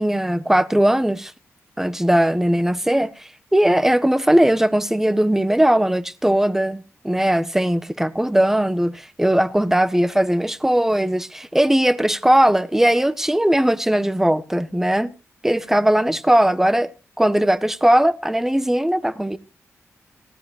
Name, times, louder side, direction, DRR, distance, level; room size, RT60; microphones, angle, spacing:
voice 1, 0.0-1.3 1.8-3.1 3.5-15.1 15.4-16.9 17.2-19.4, right 1 dB, 5° right, 1.2 m, -19 dB
18.5 x 16.5 x 2.5 m
cardioid pair, 65°, 6 cm